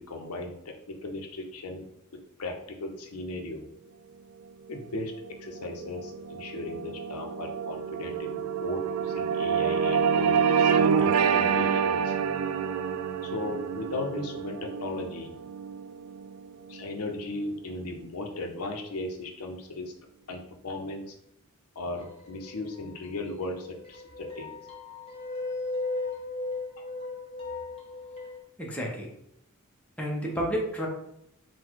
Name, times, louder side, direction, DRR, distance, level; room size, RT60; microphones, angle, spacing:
voice 1, 0.0-1.8 2.4-3.6 4.7-12.1 13.2-15.3 16.7-19.9 20.3-21.1 21.8-24.5 26.8-26.9, left 2 dB, 85° left, 3 dB, 0.7 m, -37 dB
sound 1, 5.0-17.6, right 6 dB, 80° right, 0.3 m, -28 dB
sound 2, 22.0-23.1 23.4-28.4, left 3 dB, 25° left, 1.1 m, -36 dB
voice 2, 28.6-29.1 30.0-30.9, equal, 5° left, -2 dB, 0.7 m, -30 dB
3.9 x 2.2 x 4.5 m, 0.76 s
head